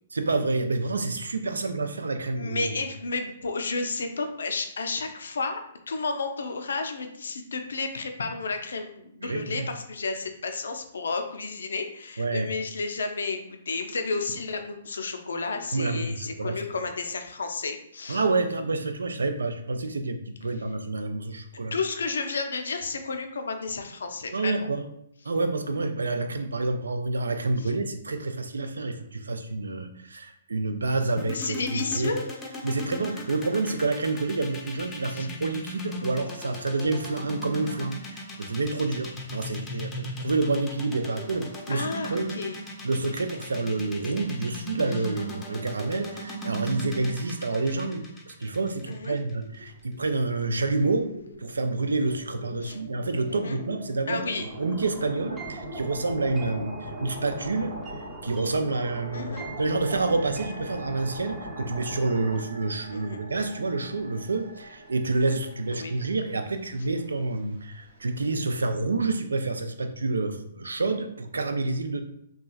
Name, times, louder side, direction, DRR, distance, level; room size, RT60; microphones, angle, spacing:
voice 1, 0.1-2.8 9.2-9.7 12.2-12.5 15.7-16.6 18.1-21.7 24.3-24.9 25.2-32.2 32.6-42.4 42.8-51.1 51.4-57.7 58.2-72.0, right 3 dB, 80° right, 8 dB, 0.3 m, -28 dB
voice 2, 2.4-5.6 5.9-18.2 21.7-24.5 27.6-27.7 31.3-32.2 35.1-35.3 41.7-42.6 48.9-49.2 52.6-52.8 53.3-53.6 54.1-54.5 59.1-59.5 62.9-63.2 65.7-66.1, left 4 dB, 75° left, 6 dB, 0.4 m, -32 dB
sound 1, 31.2-49.3, equal, 15° left, 0.5 m, -37 dB
sound 2, 49.5-50.3 50.6-68.6, right 1 dB, 60° right, 0.7 m, -44 dB
sound 3, 54.4-62.4, right 1 dB, 25° right, 0.8 m, -40 dB
2.9 x 2.3 x 2.3 m, 0.73 s
hypercardioid pair, 130°, 0 cm